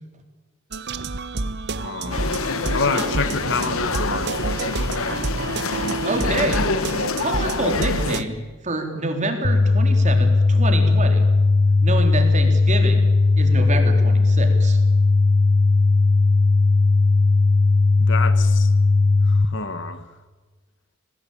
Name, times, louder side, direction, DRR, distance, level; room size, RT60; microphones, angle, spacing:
sound 1, 0.7-8.2, right 3 dB, 55° right, 1.1 m, -28 dB
voice 1, 1.7-2.3 2.7-4.9 18.0-18.7 19.3-20.0, left 4 dB, 60° left, 1.6 m, -28 dB
sound 2, 2.1-8.2, left 4 dB, 80° left, 1.2 m, -26 dB
voice 2, 6.1-6.6 7.2-11.3 11.8-13.1 13.4-14.8, right 2 dB, 35° right, 3.7 m, -27 dB
sound 3, 9.4-19.5, left 3 dB, 40° left, 1.3 m, -17 dB
25.0 x 19.0 x 8.7 m
head